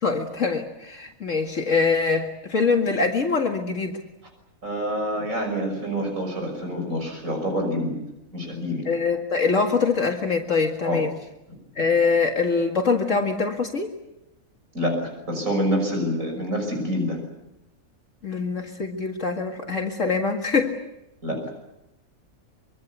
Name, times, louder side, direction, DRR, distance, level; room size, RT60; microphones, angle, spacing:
voice 1, 0.0-4.0 8.9-11.1 11.8-13.9 18.2-20.8, left 4 dB, 60° left, 2 dB, 2.3 m, -23 dB
voice 2, 4.6-8.0 8.3-8.9 10.8-11.0 14.7-17.2 21.2-21.5, equal, 65° right, 3 dB, 6.4 m, -27 dB
25.0 x 24.0 x 8.2 m, 0.89 s
omnidirectional pair, 1.5 m